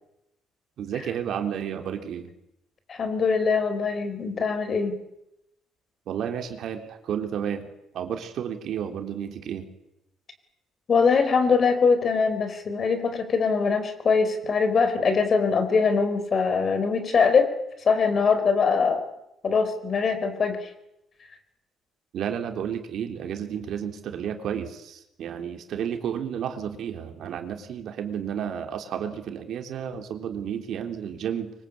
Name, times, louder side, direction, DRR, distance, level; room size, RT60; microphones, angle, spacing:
voice 1, 0.8-2.3 6.1-7.7 7.9-9.7 22.1-31.5, right 8 dB, 60° right, 5 dB, 3.6 m, -32 dB
voice 2, 2.9-5.0 10.9-17.5 17.8-19.1 19.4-20.6, left 5 dB, 35° left, 9 dB, 4.6 m, -22 dB
25.5 x 24.5 x 8.7 m, 0.84 s
cardioid pair, 145°, 0 cm